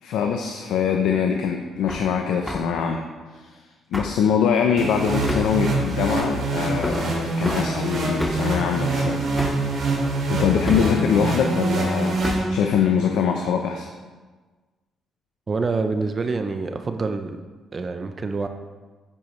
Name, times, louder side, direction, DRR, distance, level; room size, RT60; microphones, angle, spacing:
voice 1, 0.0-3.1 3.3-3.5 3.9-9.2 10.3-13.9, left 7 dB, 85° left, 3 dB, 0.7 m, -23 dB
Hammer, 1.9-2.1 2.5-2.7 3.9-4.2 5.3-5.6 6.8-7.1 7.4-7.7 8.2-8.5 9.4-9.7 10.7-11.0 12.2-12.6, left 1 dB, 10° left, 0.8 m, -29 dB
sound 1, 4.8-12.9, right 2 dB, 65° right, 3.1 m, -25 dB
voice 2, 15.5-17.4 17.7-18.5, right 4 dB, 35° right, 7 dB, 0.6 m, -26 dB
9.3 x 8.6 x 3.2 m, 1.3 s
cardioid pair, 90°, 0 cm